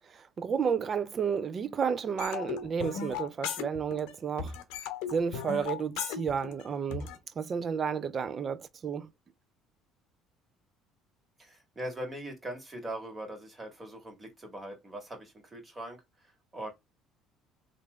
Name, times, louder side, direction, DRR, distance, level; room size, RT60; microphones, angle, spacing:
voice 1, 0.4-4.5 5.1-7.1 7.4-9.1, right 6 dB, 40° right, 0.5 m, -31 dB
sound 1, 2.2-4.1 4.4-7.2, left 8 dB, 80° left, 0.7 m, -36 dB
voice 2, 11.4-16.7, right 1 dB, 20° right, 1.9 m, -41 dB
3.2 x 2.6 x 3.2 m
supercardioid pair, 90°, 0 cm